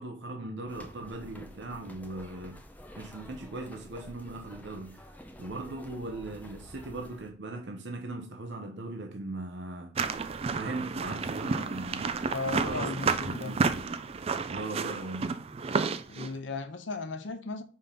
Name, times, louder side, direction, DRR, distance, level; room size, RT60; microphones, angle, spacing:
voice 1, 0.0-2.6 3.0-5.0 5.4-10.0 10.5-12.2 12.6-13.1 13.4-13.9 14.5-15.4, right 2 dB, 70° right, 0.7 m, -39 dB
sound 1, 0.7-7.3, left 1 dB, 10° left, 0.6 m, -49 dB
sound 2, 10.0-16.3, right 4 dB, 30° right, 0.4 m, -31 dB
voice 2, 12.3-13.6 16.1-17.6, left 3 dB, 85° left, 0.8 m, -36 dB
5.3 x 3.7 x 5.5 m
head